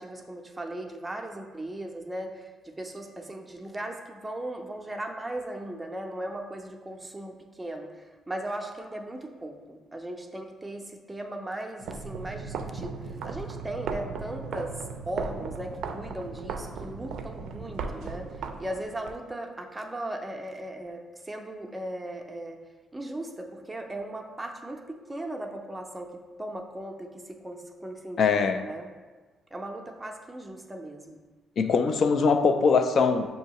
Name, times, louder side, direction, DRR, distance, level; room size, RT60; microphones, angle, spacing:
voice 1, 0.0-14.8 15.1-18.3 18.6-22.6 22.9-28.9 29.5-31.2, right 1 dB, 15° right, 3 dB, 0.5 m, -37 dB
sound 1, 11.8-19.1, right 5 dB, 80° right, 0.3 m, -37 dB
voice 2, 28.2-28.6 31.6-33.3, left 5 dB, 55° left, 8 dB, 0.4 m, -22 dB
6.5 x 2.7 x 2.9 m, 1.4 s
cardioid pair, 90°, 0 cm